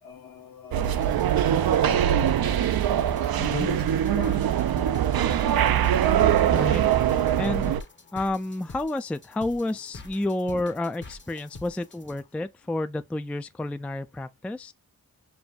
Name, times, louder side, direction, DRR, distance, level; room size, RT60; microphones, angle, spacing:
voice 1, 0.0-2.3 3.1-4.4, left 7 dB, 70° left, 1.3 m, -40 dB
sound 1, 0.7-7.8, right 10 dB, 80° right, 0.5 m, -22 dB
sound 2, 0.8-12.2, left 3 dB, 30° left, 0.8 m, -46 dB
voice 2, 6.5-6.8 7.4-7.7 8.1-14.7, left 2 dB, 5° left, 0.3 m, -30 dB
6.9 x 2.6 x 2.3 m
wide cardioid pair, 85°, 36 cm